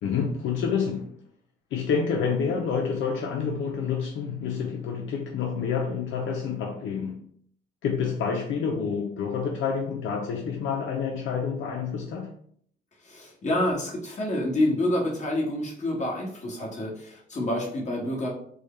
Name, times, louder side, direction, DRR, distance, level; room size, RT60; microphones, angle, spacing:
voice 1, 0.0-1.1 1.7-7.3 7.8-12.3, left 6 dB, 75° left, 0.5 m, -28 dB
voice 2, 13.0-18.3, left 1 dB, 35° left, 1.5 m, -28 dB
4.6 x 2.2 x 3.1 m
cardioid pair, 90°, 20 cm